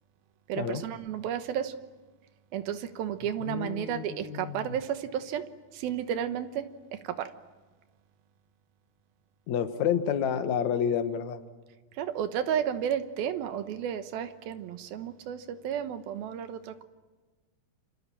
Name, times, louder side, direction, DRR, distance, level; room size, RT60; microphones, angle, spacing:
voice 1, 0.5-1.8 2.5-7.3 11.9-16.8, right 9 dB, 80° right, 9 dB, 3.0 m, -32 dB
voice 2, 3.4-4.7 9.5-11.4, left 8 dB, 60° left, 8 dB, 2.6 m, -29 dB
28.0 x 26.5 x 7.5 m, 1.3 s
omnidirectional pair, 4.2 m